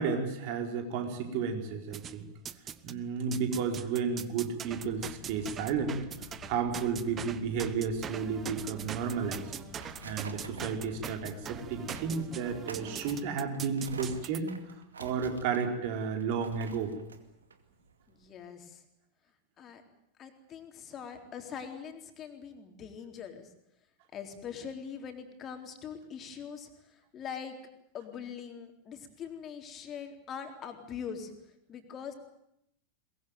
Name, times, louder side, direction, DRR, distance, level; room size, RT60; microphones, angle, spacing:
voice 1, 0.0-2.3 2.8-6.0 6.5-9.5 10.0-14.6 15.0-16.9, right 6 dB, 45° right, 5 dB, 4.5 m, -32 dB
sound 1, 1.9-3.0 3.3-14.4, right 8 dB, 25° right, 1.1 m, -42 dB
Boat Water vehicle, 4.6-12.2, left 7 dB, 50° left, 2.9 m, -50 dB
sound 2, 9.6-18.4, right 4 dB, 70° right, 2.3 m, -49 dB
voice 2, 18.1-18.8 19.6-19.8 20.2-23.5 24.1-27.6 27.9-31.3 31.7-32.1, left 7 dB, 30° left, 5 dB, 4.0 m, -42 dB
22.5 x 21.5 x 9.3 m, 0.78 s
figure-of-eight pair, 90°, 0 cm